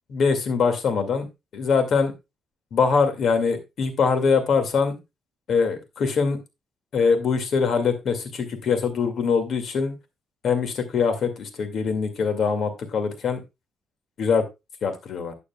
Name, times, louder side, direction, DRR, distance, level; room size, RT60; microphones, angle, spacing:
voice 1, 0.1-1.3 1.5-2.1 2.7-5.0 5.5-6.4 6.9-9.9 10.4-13.4 14.2-14.4 14.8-15.3, left 5 dB, 60° left, 8 dB, 2.2 m, -23 dB
12.5 x 8.4 x 2.3 m, 0.24 s
cardioid pair, 90°, 0 cm